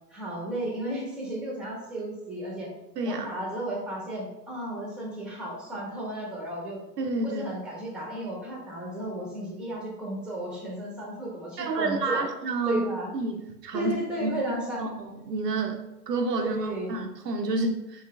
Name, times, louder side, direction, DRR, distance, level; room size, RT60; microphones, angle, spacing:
voice 1, 0.1-2.7 3.0-6.8 7.2-12.2 12.7-13.1 13.7-14.9 16.4-16.9, right 1 dB, ahead, -3 dB, 1.6 m, -33 dB
voice 2, 3.0-3.3 7.0-7.5 11.6-12.9 13.1-13.9 14.2-18.0, right 2 dB, 80° right, 4 dB, 0.7 m, -30 dB
6.3 x 3.1 x 2.4 m, 0.91 s
figure-of-eight pair, 95°, 48 cm